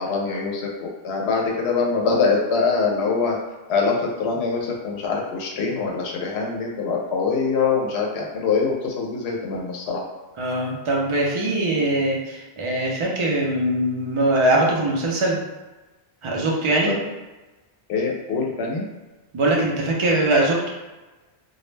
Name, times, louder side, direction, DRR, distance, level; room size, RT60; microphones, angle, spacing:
voice 1, 0.0-3.4 3.7-10.0 16.9-17.0 17.9-18.8, left 4 dB, 90° left, 0 dB, 0.8 m, -24 dB
voice 2, 10.4-15.4 16.2-17.0 19.3-20.7, right 1 dB, 45° right, -2 dB, 0.4 m, -21 dB
2.3 x 2.1 x 3.1 m, 1.1 s
omnidirectional pair, 1.1 m